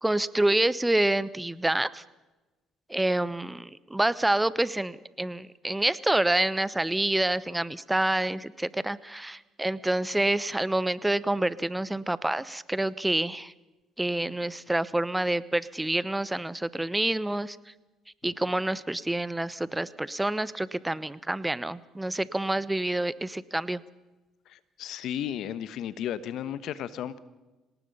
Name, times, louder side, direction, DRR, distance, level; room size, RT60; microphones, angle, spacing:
voice 1, 0.0-2.0 2.9-13.5 14.0-17.6 18.2-23.8, right 1 dB, 10° right, 18 dB, 0.9 m, -27 dB
voice 2, 24.5-27.2, left 10 dB, 65° left, 15 dB, 1.1 m, -34 dB
26.0 x 19.0 x 5.5 m, 1.1 s
hypercardioid pair, 55°, 0 cm